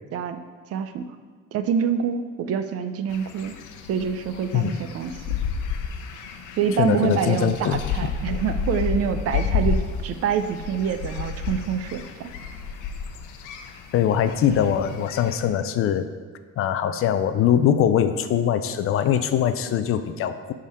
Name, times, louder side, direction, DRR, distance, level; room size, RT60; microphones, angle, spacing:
voice 1, 0.7-1.0 1.5-3.6 3.9-5.4 6.6-12.3, right 7 dB, 50° right, 9 dB, 0.5 m, -26 dB
sound 1, 3.1-15.4, left 6 dB, 80° left, 0.8 m, -31 dB
voice 2, 6.8-8.1 13.9-16.1 16.6-20.5, left 9 dB, 45° left, 10 dB, 0.4 m, -22 dB
10.5 x 3.8 x 5.5 m, 1.5 s
cardioid pair, 175°, 30 cm